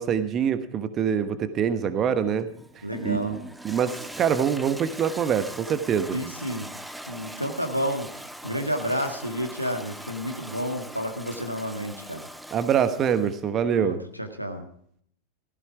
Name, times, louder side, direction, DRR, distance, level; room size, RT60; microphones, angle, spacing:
voice 1, 0.0-2.5 2.7-3.4 3.6-6.2 12.5-14.0, right 8 dB, 30° right, 11 dB, 1.1 m, -25 dB
Toilet flush, 2.4-13.4, right 1 dB, 5° right, 0.8 m, -41 dB
voice 2, 2.8-3.4 6.1-6.7 7.1-12.3 13.7-14.6, equal, 90° right, 5 dB, 1.8 m, -30 dB
15.5 x 14.5 x 4.8 m, 0.65 s
figure-of-eight pair, 90°, 0 cm